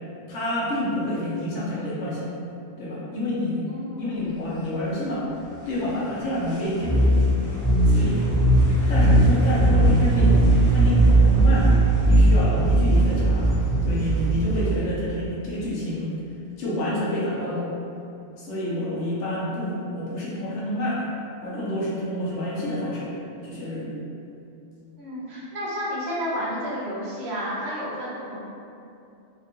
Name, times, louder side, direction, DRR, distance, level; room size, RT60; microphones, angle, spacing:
voice 1, 0.3-2.3 2.8-3.6 4.0-5.3 5.7-7.3 7.9-8.3 8.9-10.4 10.7-11.7 12.1-13.5 13.8-16.1 16.6-17.7 18.4-21.0 21.4-23.1 23.4-23.9, left 1 dB, 80° left, -7 dB, 1.0 m, -28 dB
voice 2, 3.7-4.6 25.0-28.4, equal, 65° right, -7 dB, 1.0 m, -31 dB
sound 1, 6.8-14.8, right 1 dB, ahead, 0.8 m, -18 dB
2.8 x 2.2 x 2.9 m, 2.6 s
omnidirectional pair, 1.2 m